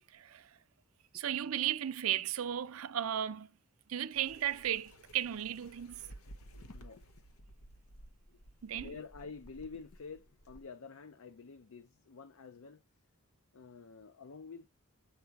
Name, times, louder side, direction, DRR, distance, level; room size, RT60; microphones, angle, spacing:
voice 1, 0.1-0.4 1.1-3.5 3.9-6.0 8.6-8.9, right 10 dB, 65° right, 0.5 m, -35 dB
sound 1, 4.1-10.6, equal, 85° left, 0.9 m, -55 dB
voice 2, 6.7-7.1 8.3-8.4 8.7-12.8 13.5-14.7, left 5 dB, 65° left, 0.5 m, -49 dB
8.0 x 2.7 x 4.6 m
head